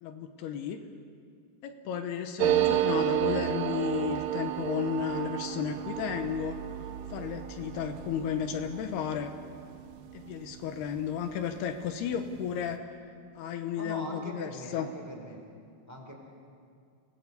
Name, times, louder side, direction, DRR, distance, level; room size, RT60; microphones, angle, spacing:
voice 1, 0.0-0.8 1.6-6.6 7.1-9.3 10.1-12.8 13.4-14.9, left 8 dB, 80° left, 6 dB, 3.1 m, -33 dB
sound 1, 2.4-11.5 11.8-11.9 12.1-12.7, right 13 dB, 70° right, 2.2 m, -32 dB
voice 2, 13.7-15.4 15.9-16.1, equal, 5° right, 0 dB, 3.7 m, -41 dB
28.5 x 19.0 x 8.3 m, 2.3 s
omnidirectional pair, 4.6 m